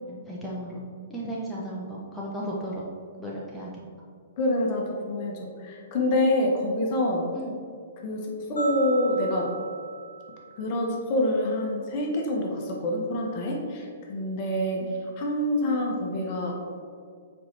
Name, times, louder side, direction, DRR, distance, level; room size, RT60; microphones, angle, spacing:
voice 1, 0.3-0.8 1.1-2.9 3.2-3.7 7.3-7.6, right 1 dB, 5° left, -6 dB, 0.8 m, -34 dB
voice 2, 4.4-7.3 8.0-9.5 10.6-16.5, left 1 dB, 40° left, -1 dB, 1.1 m, -26 dB
sound 1, 8.6-10.9, right 4 dB, 80° left, 1.2 m, -37 dB
7.6 x 4.7 x 2.8 m, 2.1 s
figure-of-eight pair, 115°, 0 cm